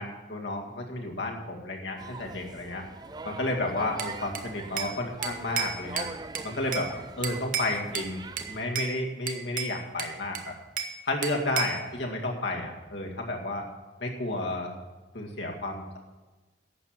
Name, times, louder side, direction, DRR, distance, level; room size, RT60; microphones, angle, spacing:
voice 1, 0.0-2.8 3.2-6.1 6.4-6.9 7.2-10.5 11.1-13.7 14.0-14.7 15.1-16.0, left 2 dB, 75° left, 0 dB, 2.1 m, -32 dB
sound 1, 2.0-8.7, right 3 dB, 20° right, 0.3 m, -42 dB
Bell / Glass, 4.0-5.0 5.2-6.9 7.2-8.1 8.4-8.9 9.3-11.0 11.2-11.8, right 7 dB, 45° right, 0.9 m, -33 dB
11.5 x 7.7 x 7.4 m, 1.2 s
head